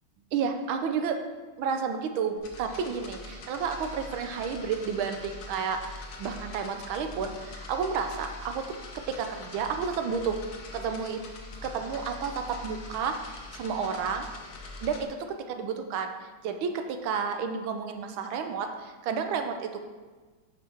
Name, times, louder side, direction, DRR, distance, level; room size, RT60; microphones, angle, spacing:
voice 1, 0.3-1.2 1.6-8.6 9.1-10.4 10.7-11.2 11.6-14.3 14.8-16.1 16.4-19.8, right 6 dB, 85° right, 6 dB, 1.5 m, -31 dB
sound 1, 2.4-15.0, left 2 dB, 55° left, 1.3 m, -43 dB
8.9 x 5.5 x 4.5 m, 1.3 s
omnidirectional pair, 2.2 m